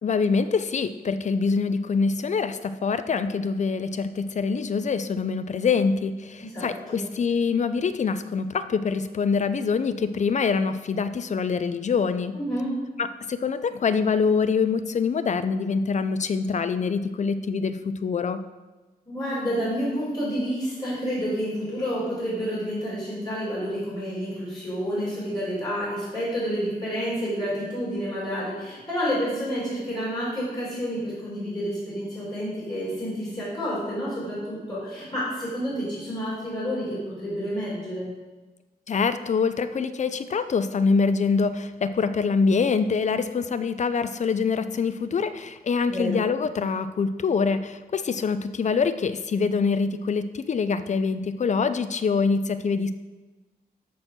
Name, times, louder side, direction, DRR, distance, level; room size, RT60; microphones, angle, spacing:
voice 1, 0.0-12.4 13.0-18.4 38.9-52.9, left 5 dB, 45° left, 11 dB, 0.5 m, -25 dB
voice 2, 6.4-7.1 12.3-12.7 19.1-38.1 45.9-46.2, equal, 25° left, -9 dB, 3.8 m, -29 dB
13.0 x 4.5 x 6.1 m, 1.2 s
wide cardioid pair, 175°, 16 cm